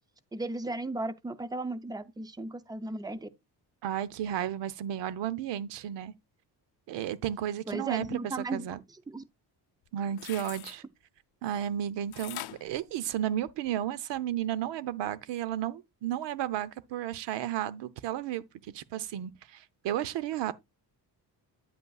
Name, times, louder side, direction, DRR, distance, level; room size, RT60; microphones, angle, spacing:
voice 1, 0.3-3.3 7.7-8.7 9.1-9.2, right 2 dB, 10° right, 0.4 m, -35 dB
voice 2, 3.8-6.1 6.9-8.2 8.5-8.8 9.9-10.8 11.4-18.4 18.7-20.5, right 11 dB, 85° right, 0.8 m, -33 dB
sound 1, 9.8-10.8 12.1-13.7 14.2-14.3, left 15 dB, 65° left, 0.6 m, -43 dB
9.5 x 8.1 x 2.3 m
cardioid pair, 160°, 42 cm